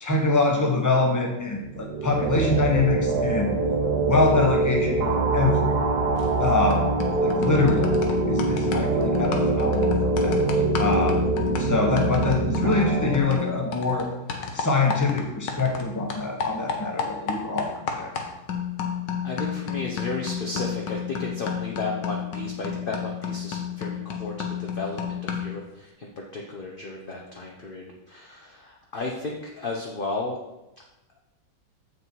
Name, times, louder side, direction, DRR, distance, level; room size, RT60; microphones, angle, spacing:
voice 1, 0.0-3.5 4.1-5.7 6.4-6.8 7.2-7.9 8.3-10.4 10.8-11.2 11.6-14.1 14.5-18.1, left 3 dB, 10° left, 1 dB, 1.0 m, -24 dB
sound 1, 1.6-13.2, right 3 dB, 60° right, 1.4 m, -24 dB
sound 2, 6.2-6.4 6.7-15.9 16.1-25.6, left 7 dB, 70° left, 1.6 m, -31 dB
voice 2, 19.2-30.4, left 3 dB, 45° left, -1 dB, 0.7 m, -34 dB
7.8 x 6.3 x 4.6 m, 0.98 s
omnidirectional pair, 2.0 m